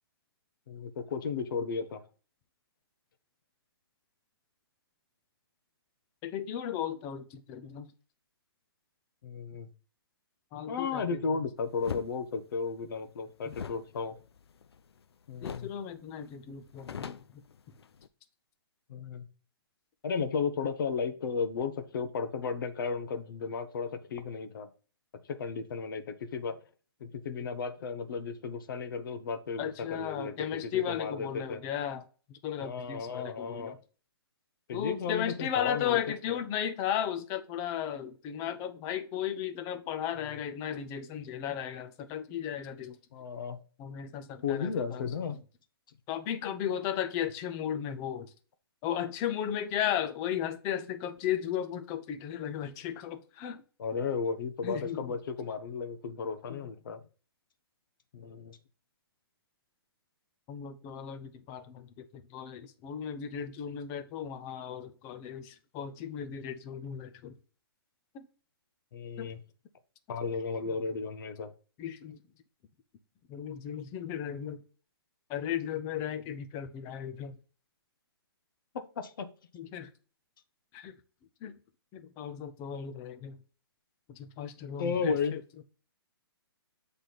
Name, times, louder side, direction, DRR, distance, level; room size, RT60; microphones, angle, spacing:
voice 1, 0.7-2.0 9.2-9.7 10.7-14.2 15.3-15.7 18.9-19.3 20.0-24.7 25.3-26.6 27.0-31.6 32.6-33.8 34.7-36.0 36.3-36.4 40.2-40.3 43.1-43.6 44.4-45.4 53.8-57.0 58.1-58.6 68.9-69.4 70.1-71.5 78.7-79.3 84.8-85.3, left 5 dB, 55° left, 0.9 m, -34 dB
voice 2, 6.2-7.9 10.5-11.2 13.5-13.6 15.4-17.4 29.6-32.0 32.3-33.8 34.7-43.0 43.8-45.1 46.1-48.3 48.8-53.6 54.6-55.1 56.5-56.6 60.5-62.0 62.3-67.3 68.1-68.3 69.2-69.3 70.7-70.8 71.8-72.2 73.3-74.6 75.3-77.3 79.5-79.9 80.7-80.9 81.4-81.6 81.9-83.4 84.2-85.4, left 9 dB, 20° left, 0.5 m, -35 dB
sound 1, 11.8-12.1 13.5-15.0 15.4-15.8 16.1-16.2 16.5-18.1, left 7 dB, 85° left, 0.5 m, -41 dB
7.5 x 3.3 x 4.0 m
hypercardioid pair, 145°, 13 cm